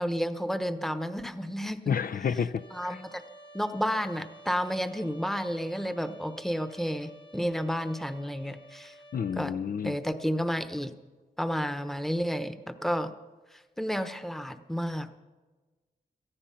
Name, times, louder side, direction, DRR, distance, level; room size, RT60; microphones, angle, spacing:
voice 1, 0.0-2.0 2.7-3.2 3.5-8.9 9.4-9.5 9.8-10.9 11.4-13.1 13.5-15.1, equal, ahead, 10 dB, 0.9 m, -31 dB
voice 2, 1.9-3.0 9.1-10.0, left 7 dB, 60° left, 13 dB, 0.5 m, -30 dB
Trumpet, 2.6-9.4, right 1 dB, 30° left, 1.3 m, -52 dB
17.5 x 14.0 x 5.7 m, 1.3 s
wide cardioid pair, 100°, 16 cm